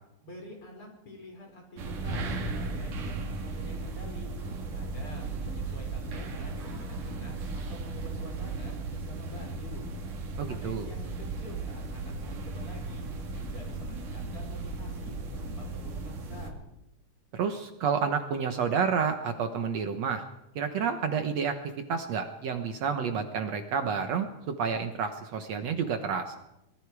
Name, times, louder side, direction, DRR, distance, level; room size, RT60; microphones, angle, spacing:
voice 1, 0.2-4.3 4.7-9.8 10.5-13.1 13.3-16.6, equal, 40° left, 1 dB, 5.8 m, -47 dB
sound 1, 1.8-16.5, right 3 dB, 80° right, 3.7 m, -36 dB
voice 2, 10.4-10.9 17.3-20.2 20.6-21.6 21.9-26.4, right 6 dB, 65° right, 7 dB, 2.2 m, -30 dB
25.5 x 21.0 x 4.8 m, 0.90 s
omnidirectional pair, 3.6 m